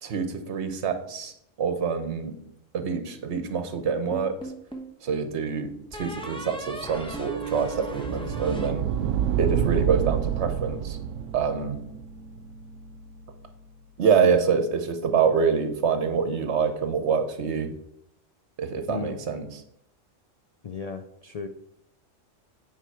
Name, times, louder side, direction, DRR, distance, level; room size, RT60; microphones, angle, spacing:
voice 1, 0.0-2.4 2.7-4.5 5.0-8.9 9.4-11.0 11.3-11.8 14.0-17.7 18.6-19.6, right 6 dB, 65° right, 8 dB, 1.2 m, -26 dB
sound 1, 4.1-5.0 5.9-9.4, right 3 dB, 5° left, 0.9 m, -37 dB
sound 2, 6.7-13.6, right 9 dB, 80° right, 0.9 m, -29 dB
voice 2, 20.6-21.5, left 5 dB, 75° left, 7 dB, 0.3 m, -35 dB
8.9 x 4.9 x 4.6 m, 0.75 s
omnidirectional pair, 1.3 m